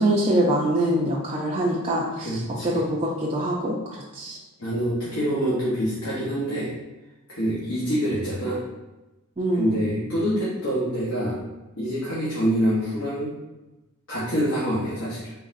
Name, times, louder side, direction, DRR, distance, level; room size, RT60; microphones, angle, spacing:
voice 1, 0.0-4.4 9.4-9.8, right 1 dB, 25° right, -5 dB, 0.5 m, -24 dB
voice 2, 2.2-2.7 4.6-6.7 7.3-8.6 9.6-11.4 11.8-13.3 14.1-15.3, equal, 60° left, -9 dB, 1.0 m, -26 dB
3.9 x 3.8 x 2.5 m, 1.0 s
head